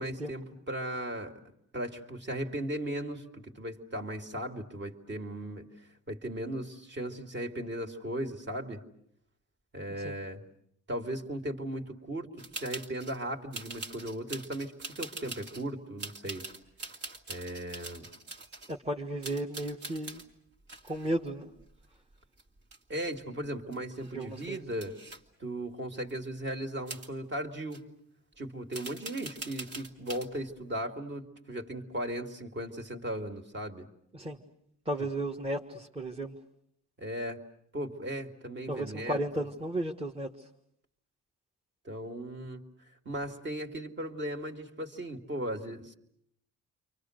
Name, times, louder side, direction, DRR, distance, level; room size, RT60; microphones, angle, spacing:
voice 1, 0.0-1.4 1.7-5.7 6.1-8.8 9.7-10.4 10.9-16.4 17.3-18.0 22.9-24.9 25.4-27.9 28.4-33.9 37.0-37.4 37.7-39.2 41.8-42.6 43.0-45.9, right 1 dB, 35° right, 3 dB, 2.5 m, -37 dB
sound 1, 12.4-13.2 13.5-15.7 16.0-18.8 19.2-20.3 20.7-22.1 22.4-23.1 23.4-23.5 23.7-25.2 26.1-26.2 26.9-27.1 27.7-27.8 28.7-30.3, right 3 dB, 55° right, 2.4 m, -43 dB
voice 2, 18.7-20.2 20.9-21.5 24.1-24.6 34.1-34.4 34.8-36.3 38.7-40.3, right 1 dB, 20° right, 1 dB, 1.5 m, -34 dB
30.0 x 24.0 x 6.5 m, 0.74 s
cardioid pair, 90°, 30 cm